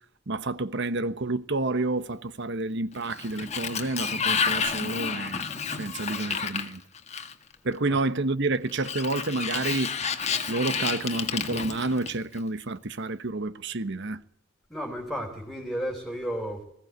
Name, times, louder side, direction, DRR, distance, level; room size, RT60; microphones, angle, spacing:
voice 1, 0.3-6.8 7.6-9.9 10.5-14.2, right 2 dB, 60° right, 1.1 m, -29 dB
Sliding door, 2.9-7.5 8.7-12.4, left 6 dB, 35° left, 1.7 m, -30 dB
voice 2, 14.7-16.6, equal, ahead, 4.0 m, -33 dB
20.5 x 16.0 x 9.4 m
head